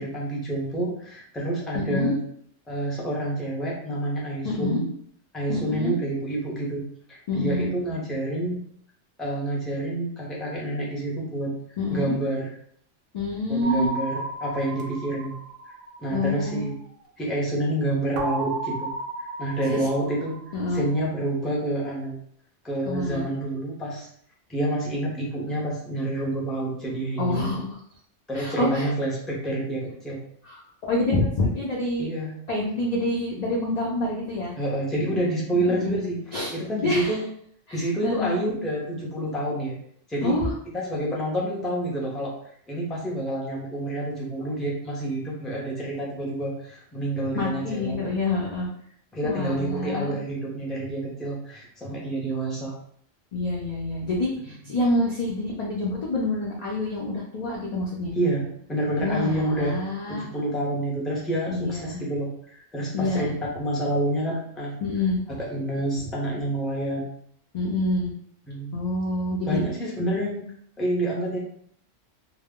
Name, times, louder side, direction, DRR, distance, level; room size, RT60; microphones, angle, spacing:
voice 1, 0.0-2.2 2.7-4.9 5.3-6.8 7.1-8.6 9.2-11.5 11.9-12.5 13.5-15.3 15.7-15.8 16.0-16.8 17.2-18.9 19.4-20.4 20.7-22.2 22.6-24.1 24.5-27.5 28.3-30.2 32.0-32.4 34.6-37.2 37.7-39.8 40.1-40.4 40.7-42.4 42.7-48.0 49.1-52.7 54.6-54.7 58.1-59.8 60.1-63.3 63.6-64.8 65.5-67.1 68.5-68.7 69.5-70.5 70.8-71.4, right 1 dB, ahead, -4 dB, 0.4 m, -28 dB
voice 2, 1.7-2.1 4.4-4.8 5.5-6.0 7.3-7.7 11.8-12.2 13.1-13.9 16.1-16.7 19.7-19.9 20.5-20.8 22.9-23.2 27.2-27.8 28.3-28.9 30.4-32.1 32.5-34.5 35.5-36.0 36.3-36.5 36.8-37.2 37.7-38.4 40.2-40.5 47.3-48.7 49.2-50.2 53.3-58.1 59.0-60.3 61.5-62.0 62.9-63.3 64.8-65.2 67.5-68.1 68.7-69.6, left 2 dB, 60° left, -4 dB, 0.4 m, -27 dB
sound 1, 13.6-16.5 18.2-21.0, right 2 dB, 60° right, 0.6 m, -34 dB
2.1 x 2.0 x 3.5 m, 0.65 s
omnidirectional pair, 1.2 m